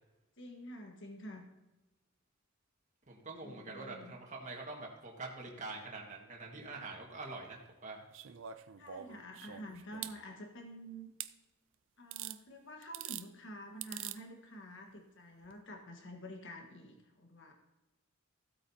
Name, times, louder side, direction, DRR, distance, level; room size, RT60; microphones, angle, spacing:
voice 1, 0.4-1.4 3.4-4.2 8.8-11.1 12.0-17.5, equal, 60° left, 3 dB, 1.5 m, -49 dB
voice 2, 3.1-8.0, right 3 dB, 35° right, -1 dB, 1.7 m, -45 dB
sound 1, 8.1-10.2 11.2-11.3 12.1-12.4 12.8-13.3 13.8-14.2 15.4-15.5, right 11 dB, 60° right, 0.5 m, -44 dB
15.0 x 8.5 x 2.8 m, 1.0 s
head